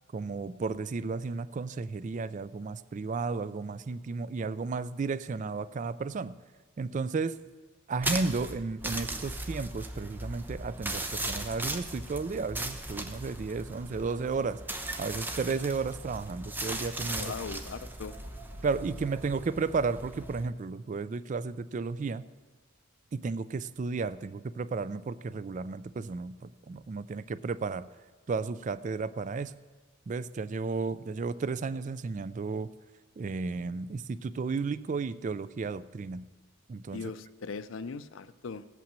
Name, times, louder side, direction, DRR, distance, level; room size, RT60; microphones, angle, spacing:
voice 1, 0.1-6.3 6.8-7.4 7.9-14.6 15.0-17.3 18.6-22.2 23.1-27.9 28.3-29.5 30.1-32.7 33.2-36.2 36.7-37.0, right 4 dB, 35° right, 15 dB, 0.3 m, -33 dB
sound 1, 8.0-20.5, right 1 dB, 10° right, 0.8 m, -38 dB
voice 2, 17.1-18.2 36.9-38.7, left 5 dB, 70° left, 15 dB, 0.5 m, -39 dB
17.0 x 5.8 x 7.4 m, 1.4 s
head